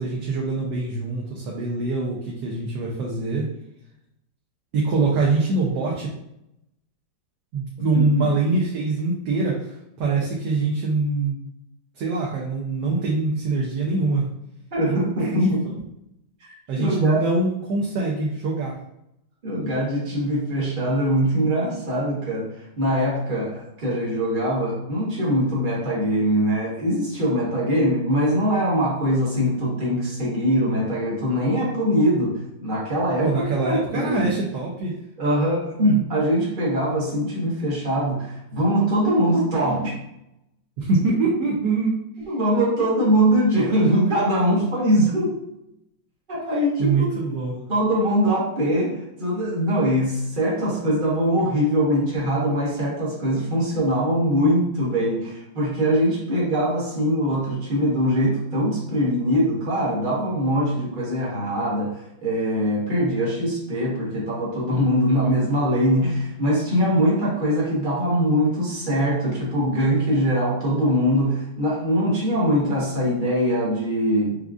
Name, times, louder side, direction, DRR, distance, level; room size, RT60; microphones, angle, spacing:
voice 1, 0.0-3.5 4.7-6.1 7.5-11.4 12.0-14.3 14.9-15.5 16.7-18.8 33.2-35.0 40.8-42.0 46.8-47.6, right 3 dB, 70° right, -3 dB, 1.2 m, -24 dB
voice 2, 7.9-8.3 14.7-15.6 16.4-17.2 19.4-33.3 33.6-34.3 35.2-39.9 42.3-45.3 46.3-47.1 47.7-74.4, equal, 35° right, -5 dB, 0.9 m, -22 dB
4.9 x 2.4 x 2.4 m, 0.82 s
omnidirectional pair, 2.1 m